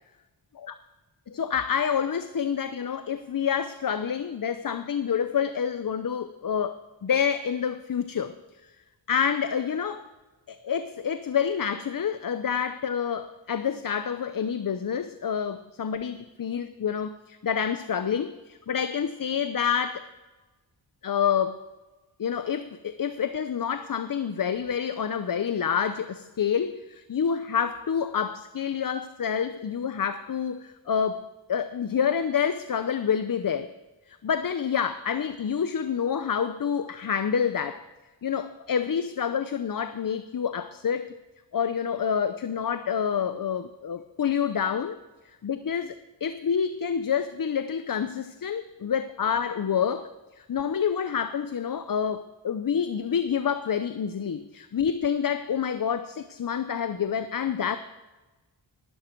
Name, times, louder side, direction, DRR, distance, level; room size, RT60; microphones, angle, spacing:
voice 1, 1.3-8.3 9.1-10.0 10.5-20.0 21.0-21.6 22.2-31.2 31.5-33.7 34.1-37.8 38.2-41.1 41.5-45.0 45.4-46.0 46.2-50.1 50.4-57.8, left 7 dB, 45° left, 11 dB, 0.7 m, -28 dB
18.0 x 12.0 x 4.6 m, 1.2 s
wide cardioid pair, 80°, 45 cm